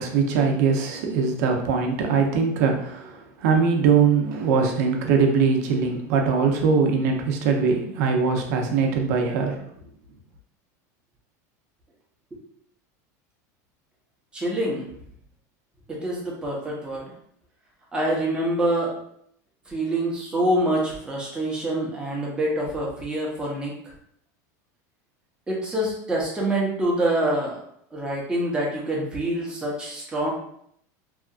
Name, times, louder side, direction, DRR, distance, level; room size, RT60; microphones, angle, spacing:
voice 1, 0.0-9.6, right 5 dB, 70° right, 2 dB, 0.6 m, -22 dB
voice 2, 14.3-14.9 15.9-17.1 17.9-19.0 19.7-23.7 25.5-27.6 27.9-30.3, right 1 dB, 10° right, -4 dB, 0.7 m, -26 dB
2.8 x 2.4 x 2.4 m, 0.68 s
supercardioid pair, 150°, 9 cm